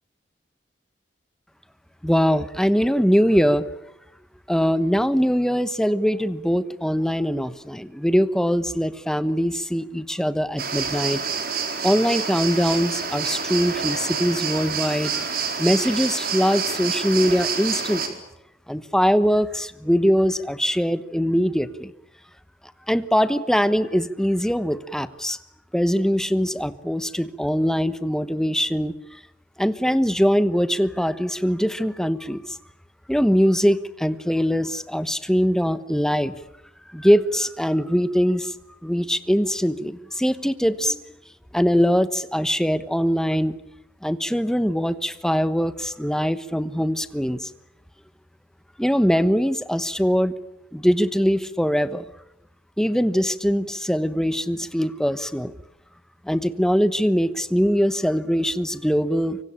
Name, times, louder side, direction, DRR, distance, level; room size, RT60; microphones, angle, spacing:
voice 1, 2.0-3.7 4.5-11.2 11.8-15.2 15.6-18.2 18.7-21.9 22.9-25.4 25.7-29.2 29.6-32.6 33.1-36.3 36.9-38.5 38.8-41.0 41.5-43.6 44.0-47.5 48.8-50.3 50.7-52.0 52.8-55.5 56.2-59.4, equal, 5° left, 13 dB, 1.1 m, -22 dB
sound 1, 10.6-18.1, right 5 dB, 60° right, 4.3 m, -28 dB
25.0 x 24.5 x 8.9 m, 0.85 s
head